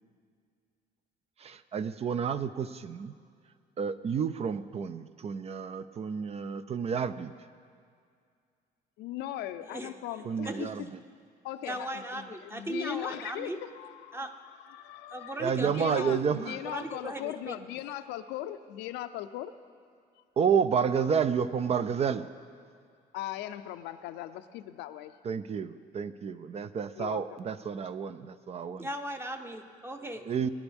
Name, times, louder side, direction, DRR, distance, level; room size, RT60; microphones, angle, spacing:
voice 1, 1.4-3.1 3.8-7.3 10.3-10.8 15.4-16.5 20.4-22.3 25.3-28.9 30.3-30.5, right 7 dB, 40° right, 13 dB, 0.4 m, -30 dB
voice 2, 9.0-10.7 11.4-19.5 20.2-20.3 23.1-25.2 26.9-27.4, left 13 dB, 90° left, 10 dB, 0.6 m, -39 dB
voice 3, 11.7-13.6 14.1-14.3 15.1-16.1 16.6-17.6 28.8-30.3, right 1 dB, 15° right, 6 dB, 0.9 m, -37 dB
22.0 x 10.5 x 3.5 m, 2.2 s
cardioid pair, 110°, 17 cm